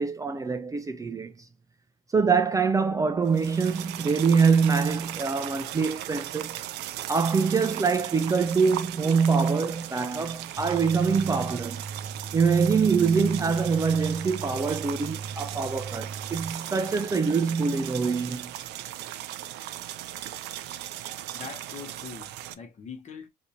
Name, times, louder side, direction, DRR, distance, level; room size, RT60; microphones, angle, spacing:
voice 1, 0.0-1.3 2.1-6.6 7.1-11.8 12.3-18.5, right 5 dB, 20° right, 0.3 m, -24 dB
sound 1, 3.3-22.5, right 13 dB, 85° right, 0.4 m, -37 dB
sound 2, 10.6-16.5, right 5 dB, 55° right, 0.8 m, -39 dB
voice 2, 21.3-23.3, left 6 dB, 45° left, 1.0 m, -42 dB
3.8 x 2.7 x 2.7 m
cardioid pair, 110°, 17 cm